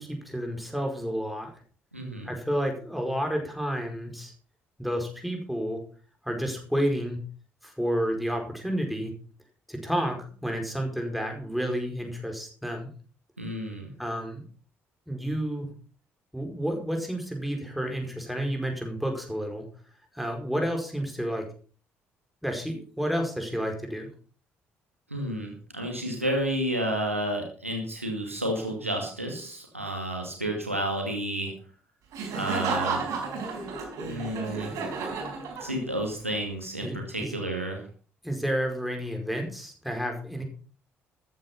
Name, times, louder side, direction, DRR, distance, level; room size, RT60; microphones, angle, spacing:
voice 1, 0.0-1.5 2.2-4.3 4.8-5.8 6.2-7.2 7.6-9.1 9.7-12.9 14.0-14.4 15.1-15.7 16.3-19.7 20.1-21.5 22.4-24.1 36.8-37.3 38.2-40.4, equal, ahead, 3 dB, 4.9 m, -30 dB
voice 2, 1.9-2.3 13.4-13.9 25.1-31.5 32.3-33.0 34.0-34.8 35.6-37.8, right 1 dB, 90° right, 2 dB, 2.3 m, -31 dB
Laughter, 32.1-36.1, right 4 dB, 55° right, 4.5 m, -32 dB
14.0 x 9.2 x 5.6 m, 0.40 s
figure-of-eight pair, 45°, 7 cm